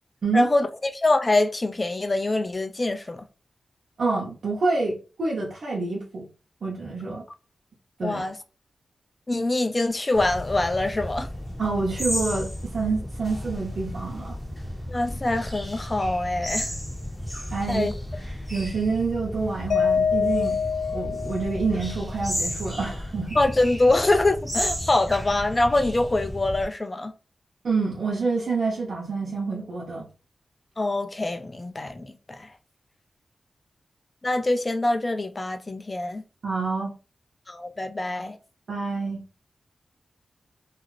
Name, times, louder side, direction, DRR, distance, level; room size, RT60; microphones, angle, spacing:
voice 1, 0.3-3.2 8.0-8.3 9.3-11.3 14.9-16.7 17.7-17.9 23.4-27.1 30.8-32.5 34.2-36.2 37.5-38.4, left 2 dB, 25° left, 0.3 m, -24 dB
voice 2, 4.0-6.2 6.6-7.2 8.0-8.2 11.6-14.4 17.5-17.9 18.5-20.6 20.9-23.4 27.6-30.0 36.4-36.9 38.7-39.2, right 4 dB, 65° right, 0.7 m, -27 dB
sound 1, 10.1-26.6, equal, 5° left, 1.3 m, -33 dB
Mallet percussion, 19.7-22.0, left 6 dB, 85° left, 0.5 m, -25 dB
2.4 x 2.4 x 3.1 m
wide cardioid pair, 125°, 0 cm